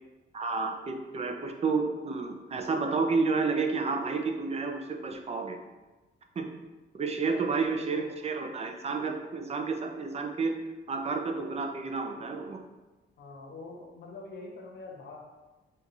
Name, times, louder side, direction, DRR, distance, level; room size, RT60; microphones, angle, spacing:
voice 1, 0.3-5.6 6.4-6.5 6.9-10.5 10.9-12.6, right 4 dB, 35° right, 4 dB, 0.5 m, -30 dB
voice 2, 7.2-8.1 13.2-15.3, left 3 dB, 65° left, 0 dB, 0.9 m, -44 dB
4.4 x 2.4 x 3.9 m, 1.2 s
cardioid pair, 120°, 19 cm